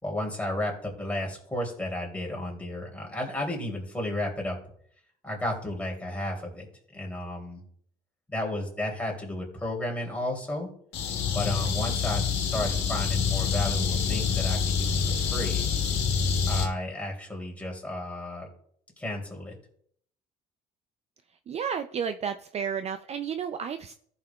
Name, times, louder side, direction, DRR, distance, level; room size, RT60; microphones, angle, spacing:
voice 1, 0.0-4.6 5.2-7.6 8.3-10.7 11.3-15.6 16.5-18.5 19.0-19.5, left 1 dB, 10° left, 0 dB, 2.9 m, -33 dB
sound 1, 10.9-16.7, left 6 dB, 90° left, 1.6 m, -26 dB
voice 2, 21.5-23.9, right 7 dB, 40° right, 9 dB, 0.4 m, -32 dB
15.0 x 5.7 x 2.3 m, 0.64 s
cardioid pair, 110°, 17 cm